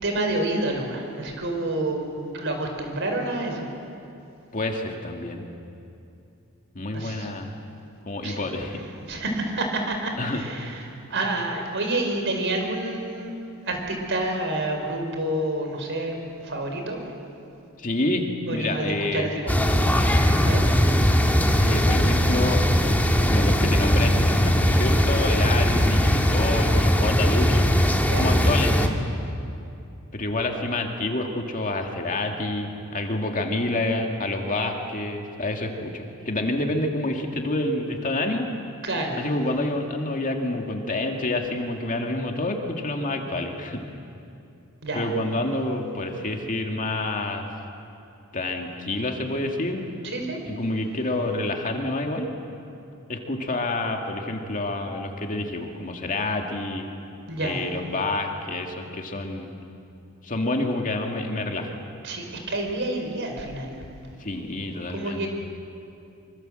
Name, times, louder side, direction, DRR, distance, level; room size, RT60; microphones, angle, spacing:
voice 1, 0.0-3.7 6.9-7.3 8.2-13.3 13.6-16.2 16.4-17.0 18.5-19.9 20.3-20.6 28.1-28.3 38.8-39.2 44.8-45.1 50.0-50.4 57.3-57.7 62.0-63.8 64.7-65.3, right 2 dB, 60° right, 3 dB, 4.7 m, -29 dB
voice 2, 4.5-5.5 6.7-7.5 8.1-8.8 10.2-10.4 17.8-19.3 21.6-22.6 23.3-27.7 28.2-28.8 30.1-38.5 39.2-43.8 44.9-47.5 48.3-49.9 50.5-52.3 53.1-56.9 57.4-59.5 60.2-61.8 64.2-65.2, left 2 dB, 40° left, 3 dB, 2.2 m, -28 dB
sound 1, 19.5-28.9, equal, 10° left, 1.7 m, -20 dB
25.0 x 25.0 x 7.7 m, 2.6 s
head